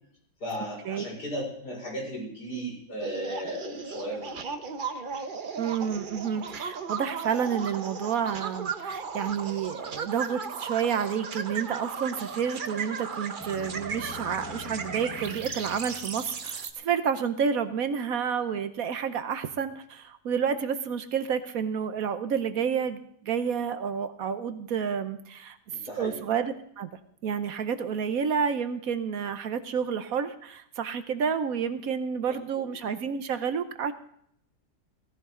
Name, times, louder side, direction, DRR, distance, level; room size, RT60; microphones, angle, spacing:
voice 1, 0.4-4.4 25.8-26.2, equal, 75° left, -2 dB, 6.0 m, -35 dB
sound 1, 3.0-16.7, right 5 dB, 40° right, 0.8 m, -36 dB
voice 2, 5.6-25.6 25.8-26.9 27.2-33.9, right 7 dB, 65° right, 11 dB, 1.2 m, -30 dB
sound 2, 12.0-16.8, left 2 dB, 10° left, 0.8 m, -45 dB
17.0 x 15.0 x 3.7 m, 0.70 s
omnidirectional pair, 1.7 m